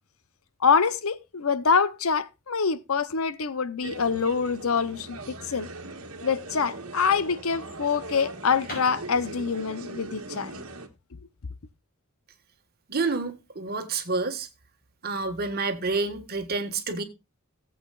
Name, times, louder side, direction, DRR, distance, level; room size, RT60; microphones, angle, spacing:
voice 1, 0.6-5.2 5.4-5.7 6.2-10.5, left 5 dB, 70° left, 0.8 m, -25 dB
sound 1, 3.8-10.9, right 2 dB, 70° right, 1.4 m, -40 dB
sound 2, 8.6-12.4, left 1 dB, 45° left, 5.4 m, -46 dB
voice 2, 12.9-14.5 15.0-17.0, right 3 dB, 45° right, 1.5 m, -28 dB
17.5 x 8.0 x 2.4 m
head